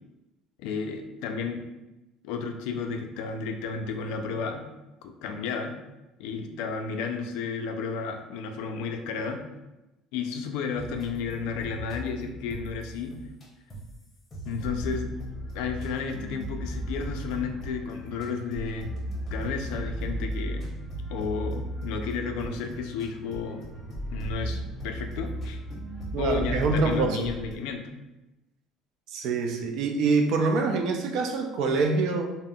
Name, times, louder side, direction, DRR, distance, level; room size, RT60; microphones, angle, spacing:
voice 1, 0.6-1.6 2.2-4.6 5.0-5.7 6.2-9.4 10.1-13.1 14.5-15.1 15.5-18.9 19.3-20.7 21.1-23.6 24.1-25.6 26.2-28.0, left 5 dB, 80° left, 5 dB, 0.3 m, -32 dB
sound 1, 10.8-13.4 13.7-14.0 14.3-27.5, right 1 dB, 30° left, 0.8 m, -36 dB
voice 2, 26.1-27.3 29.1-32.3, right 4 dB, 65° right, 4 dB, 0.4 m, -25 dB
3.6 x 2.0 x 2.2 m, 0.99 s
cardioid pair, 115°, 0 cm